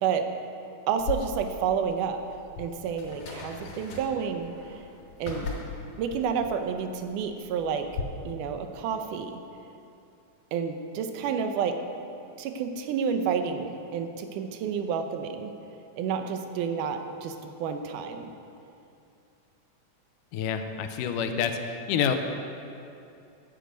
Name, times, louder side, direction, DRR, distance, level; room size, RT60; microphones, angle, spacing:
voice 1, 0.9-2.2 2.6-4.8 5.2-5.6 6.0-7.9 8.3-9.4 10.5-11.8 12.4-15.5 15.9-18.3, right 7 dB, 80° right, 7 dB, 2.2 m, -30 dB
sound 1, 1.0-8.0, left 5 dB, 70° left, 3.1 m, -39 dB
voice 2, 20.3-22.2, left 7 dB, 85° left, 7 dB, 2.2 m, -28 dB
10.0 x 7.9 x 5.1 m, 2.6 s
omnidirectional pair, 3.7 m